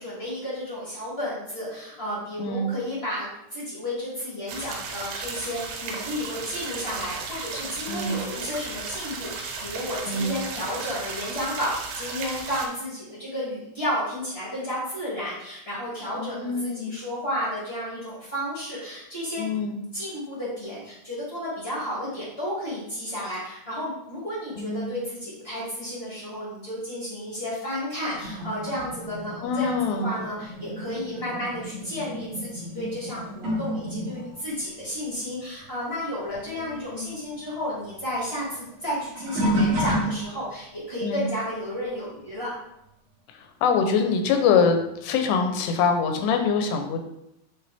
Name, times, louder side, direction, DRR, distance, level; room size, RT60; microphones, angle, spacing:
voice 1, 0.0-19.4 19.9-42.5, equal, 35° left, -8 dB, 0.9 m, -32 dB
voice 2, 2.4-2.7 7.9-8.2 10.1-10.4 16.2-17.0 19.4-19.8 24.6-24.9 29.4-30.2 36.5-37.2 41.0-41.3 43.3-47.0, left 5 dB, 85° left, 5 dB, 2.9 m, -25 dB
sound 1, 4.5-12.7, right 4 dB, 85° right, 3.2 m, -35 dB
sound 2, 28.0-36.0 36.3-40.6 41.2-41.6 43.8-43.9 44.8-44.9, equal, 50° right, 2.3 m, -32 dB
8.4 x 3.4 x 3.4 m, 0.82 s
omnidirectional pair, 4.8 m